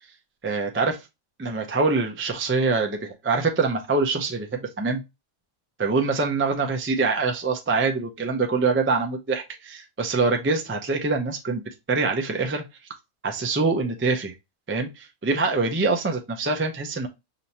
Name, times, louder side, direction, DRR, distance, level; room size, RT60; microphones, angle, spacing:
voice 1, 0.4-1.1 1.4-5.0 5.8-11.6 11.9-12.6 13.2-14.3 14.7-17.1, right 4 dB, 15° right, 0.4 m, -24 dB
5.2 x 2.8 x 2.8 m
omnidirectional pair, 1.5 m